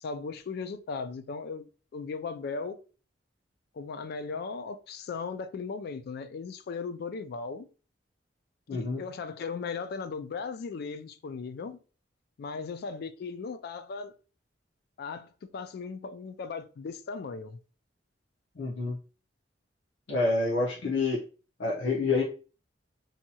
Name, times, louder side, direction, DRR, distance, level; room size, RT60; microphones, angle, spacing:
voice 1, 0.0-2.8 3.7-7.7 8.7-11.8 12.4-14.1 15.0-17.6 20.8-20.9, left 5 dB, 60° left, 0.3 m, -37 dB
voice 2, 8.7-9.0 18.6-18.9 20.1-21.2 21.6-22.2, left 3 dB, 80° left, 0.7 m, -27 dB
2.7 x 2.3 x 2.7 m
head